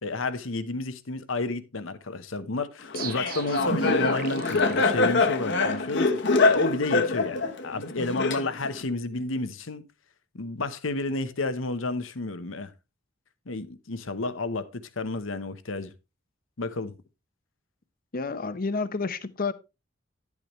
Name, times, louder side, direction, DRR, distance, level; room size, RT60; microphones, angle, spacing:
voice 1, 0.0-9.8 10.3-12.7 13.5-15.9 16.6-16.9, left 2 dB, 85° left, 1.0 m, -31 dB
Laughter, 2.9-8.8, left 3 dB, 65° left, 1.2 m, -24 dB
sound 1, 2.9-5.7, right 4 dB, 50° right, 0.8 m, -37 dB
voice 2, 18.1-19.5, left 4 dB, 45° left, 0.8 m, -29 dB
10.5 x 8.3 x 3.1 m
head